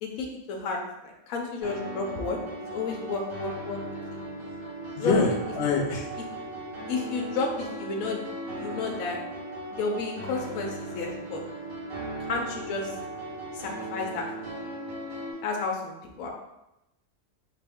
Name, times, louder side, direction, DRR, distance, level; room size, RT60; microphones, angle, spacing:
voice 1, 0.0-3.8 4.1-4.2 5.0-5.1 6.9-8.2 8.6-9.2 9.7-11.5 12.2-13.0 13.5-14.6 15.4-16.3, left 4 dB, 85° left, 1 dB, 1.0 m, -32 dB
sound 1, 1.6-15.3, right 2 dB, 80° right, 1.4 m, -37 dB
voice 2, 5.0-6.1, left 4 dB, 65° left, 0 dB, 0.9 m, -25 dB
3.5 x 2.5 x 3.4 m, 0.91 s
omnidirectional pair, 1.4 m